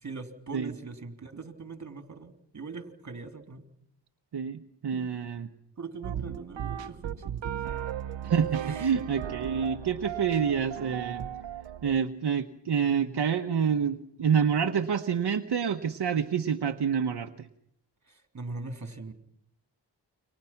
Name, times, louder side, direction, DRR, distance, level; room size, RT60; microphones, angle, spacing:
voice 1, 0.0-3.7 4.9-5.1 5.8-7.8 8.2-8.3 8.7-8.9 18.1-19.1, right 4 dB, 40° right, 7 dB, 3.3 m, -41 dB
voice 2, 4.3-5.5 8.2-11.3 11.8-17.5, right 7 dB, 65° right, 6 dB, 1.2 m, -28 dB
sound 1, 6.0-12.0, right 10 dB, 90° right, 1.0 m, -36 dB
29.5 x 25.0 x 5.9 m, 0.70 s
cardioid pair, 80°, 43 cm